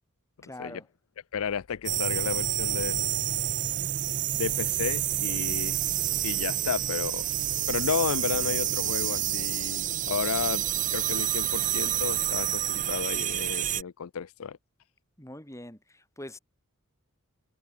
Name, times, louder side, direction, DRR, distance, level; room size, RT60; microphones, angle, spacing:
voice 1, 0.4-0.9 15.2-16.4, left 1 dB, 15° left, 6.4 m, -43 dB
voice 2, 1.3-3.1 4.3-5.8 6.2-7.3 7.7-10.7 10.9-14.6, left 7 dB, 70° left, 0.5 m, -32 dB
sound 1, 1.9-13.8, right 12 dB, 35° right, 0.6 m, -28 dB
head